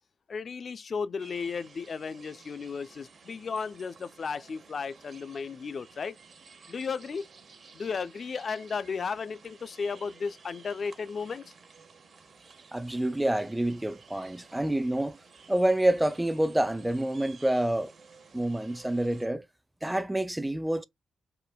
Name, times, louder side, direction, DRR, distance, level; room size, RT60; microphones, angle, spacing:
voice 1, 0.3-6.2 6.7-7.3 7.7-11.5, left 5 dB, 55° left, 0.4 m, -34 dB
sound 1, 1.2-19.3, right 5 dB, 60° right, 1.0 m, -54 dB
voice 2, 12.7-15.2 15.5-17.9 18.3-19.4 19.8-20.8, right 1 dB, 10° right, 0.5 m, -27 dB
5.0 x 2.5 x 2.2 m
supercardioid pair, 55°, 0 cm